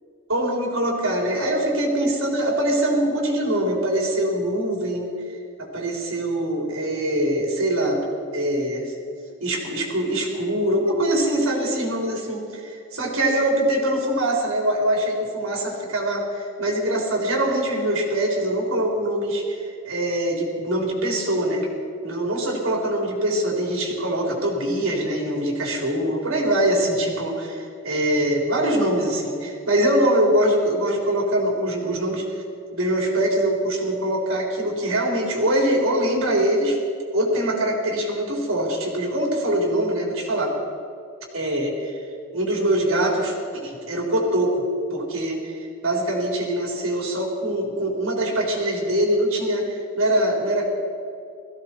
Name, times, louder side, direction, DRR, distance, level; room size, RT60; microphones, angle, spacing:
voice 1, 0.3-5.1 5.7-8.0 8.3-8.9 9.4-21.7 22.0-32.3 32.7-36.8 37.1-40.5 41.3-41.9 42.3-44.6 44.9-45.5 45.8-50.7, right 1 dB, 85° right, -1 dB, 4.0 m, -23 dB
18.0 x 15.5 x 4.5 m, 2.4 s
head